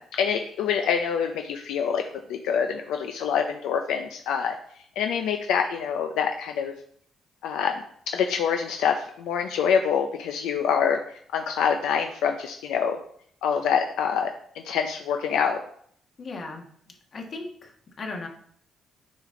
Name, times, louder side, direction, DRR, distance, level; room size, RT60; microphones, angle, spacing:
voice 1, 0.0-2.0 2.3-4.5 5.0-6.7 7.4-7.8 8.1-13.0 13.4-15.6, left 7 dB, 90° left, 5 dB, 0.5 m, -26 dB
voice 2, 16.2-16.6 17.1-17.7 18.0-18.3, left 3 dB, 50° left, 2 dB, 1.5 m, -36 dB
6.2 x 5.1 x 3.7 m, 0.63 s
cardioid pair, 90°, 0 cm